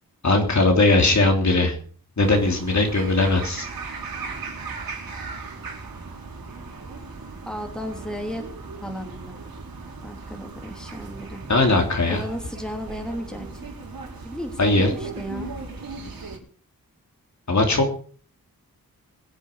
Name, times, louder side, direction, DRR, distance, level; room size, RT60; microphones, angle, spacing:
voice 1, 0.2-1.8 2.2-3.7 11.5-12.2 14.6-14.9 17.5-18.0, left 2 dB, 50° left, 2 dB, 3.3 m, -19 dB
sound 1, 2.2-16.4, right 4 dB, 75° right, 4.1 m, -37 dB
voice 2, 7.4-8.5 8.8-9.3 10.0-11.4 12.1-13.5 14.2-15.5, equal, ahead, 3 dB, 3.3 m, -34 dB
22.5 x 7.5 x 5.2 m, 0.44 s
wide cardioid pair, 80°, 35 cm